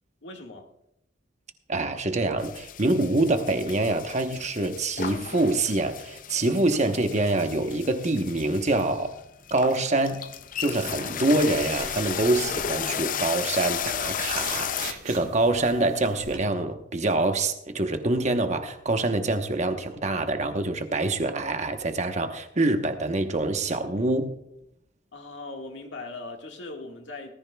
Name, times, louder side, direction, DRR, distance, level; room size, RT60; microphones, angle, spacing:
voice 1, 0.2-0.7 25.1-27.3, left 2 dB, 80° left, 1.8 m, -39 dB
voice 2, 1.7-9.2 9.5-10.3 10.6-24.4, right 2 dB, 40° right, 1.1 m, -25 dB
sound 1, 2.4-14.9, left 8 dB, 45° left, 0.5 m, -34 dB
sound 2, 11.3-16.4, right 4 dB, 75° right, 2.9 m, -43 dB
19.0 x 14.0 x 2.3 m
head